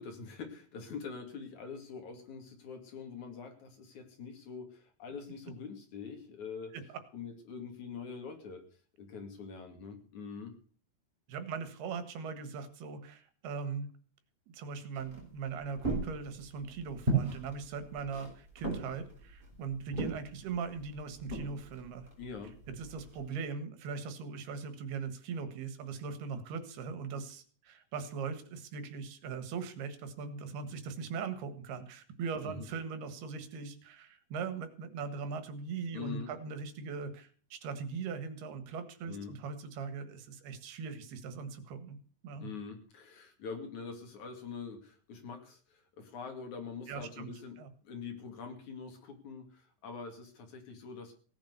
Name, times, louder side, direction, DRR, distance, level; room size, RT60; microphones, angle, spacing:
voice 1, 0.0-6.8 7.1-8.6 9.0-10.6 22.2-22.6 32.4-32.7 35.9-36.3 39.1-39.3 42.4-51.1, left 5 dB, 55° left, 4 dB, 3.6 m, -44 dB
voice 2, 11.3-13.9 14.5-22.1 22.7-42.0 42.2-42.5 46.9-47.3 47.6-47.7, right 5 dB, 90° right, 10 dB, 3.7 m, -40 dB
sound 1, 14.9-23.3, right 3 dB, 10° right, 5.9 m, -38 dB
17.5 x 9.0 x 6.8 m, 0.44 s
omnidirectional pair, 4.4 m